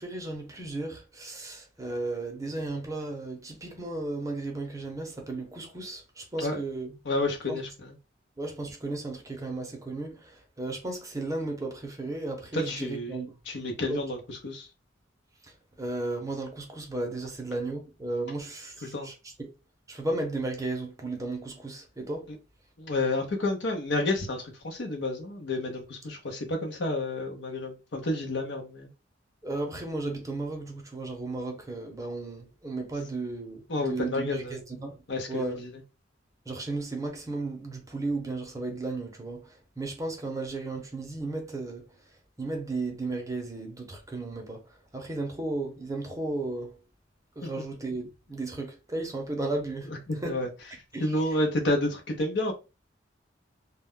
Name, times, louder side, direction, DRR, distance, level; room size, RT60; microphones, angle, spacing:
voice 1, 0.0-6.9 7.5-7.6 8.4-13.3 13.9-14.0 15.8-19.5 19.9-22.3 29.4-35.0 35.3-35.6 36.5-41.8 42.4-44.6 44.9-46.8 47.4-49.9 50.2-50.5 50.9-51.2, right 2 dB, 15° right, 0.6 m, -34 dB
voice 2, 7.0-7.9 12.5-14.7 18.8-19.1 22.8-28.9 33.7-34.6 35.1-35.7 47.4-47.5 49.9-50.5 51.0-52.5, left 2 dB, 65° left, 0.7 m, -30 dB
2.2 x 2.1 x 3.5 m
head